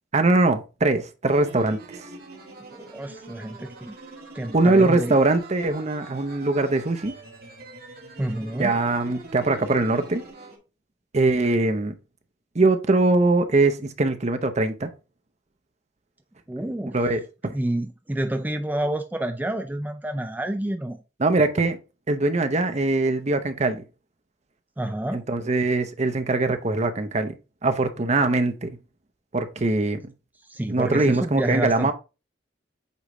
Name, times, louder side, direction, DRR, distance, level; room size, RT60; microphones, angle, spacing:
voice 1, 0.1-2.0 4.5-7.1 8.6-10.2 11.1-11.9 12.5-14.9 16.9-17.5 21.2-21.8 22.1-23.8 25.1-27.4 27.6-28.8 29.3-30.1 30.7-31.9, right 2 dB, 40° right, 0.7 m, -22 dB
sound 1, 1.2-10.6, right 2 dB, 55° right, 1.7 m, -43 dB
voice 2, 2.7-4.0 4.3-5.1 8.2-8.7 16.5-17.0 17.5-21.0 24.8-25.2 30.5-31.9, right 1 dB, 10° right, 0.4 m, -28 dB
8.3 x 3.2 x 3.7 m
head